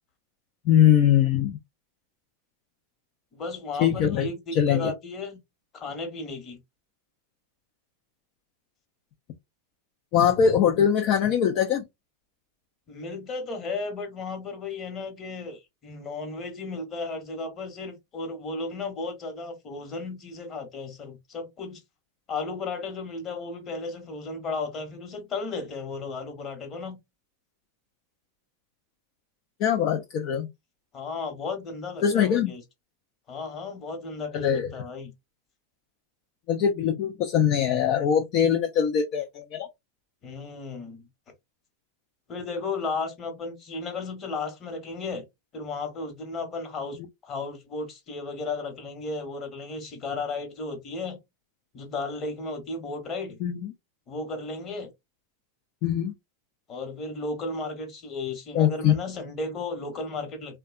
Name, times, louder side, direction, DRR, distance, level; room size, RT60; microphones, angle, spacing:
voice 1, 0.7-1.6 3.8-4.9 10.1-11.8 29.6-30.5 32.0-32.5 34.3-34.7 36.5-39.7 53.4-53.7 55.8-56.1 58.5-58.9, left 9 dB, 50° left, 0.4 m, -22 dB
voice 2, 3.3-5.4 5.7-6.6 12.9-21.8 22.3-27.0 30.9-32.6 33.3-35.1 40.2-41.1 42.3-45.2 45.5-51.2 51.7-53.4 54.1-54.9 56.7-60.6, left 3 dB, 35° left, 1.0 m, -34 dB
2.7 x 2.2 x 2.3 m
hypercardioid pair, 120°, 0 cm